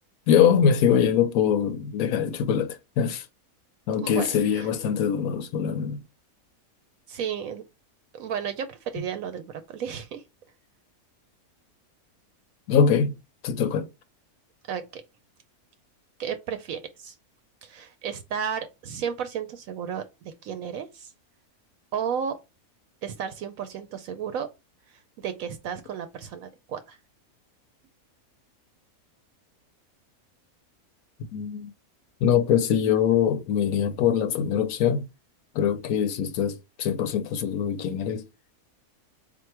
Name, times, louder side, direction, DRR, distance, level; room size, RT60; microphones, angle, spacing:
voice 1, 0.3-3.2 3.9-6.0 12.7-13.2 13.4-13.9 31.3-31.7 32.2-35.1 35.5-38.2, left 8 dB, 75° left, 1.0 m, -23 dB
voice 2, 4.0-4.7 7.1-7.6 8.1-10.2 14.7-15.0 16.2-17.1 17.6-21.1 21.9-22.4 23.0-24.5 24.9-27.0, right 7 dB, 75° right, 1.0 m, -33 dB
3.7 x 2.6 x 4.5 m
omnidirectional pair, 1.5 m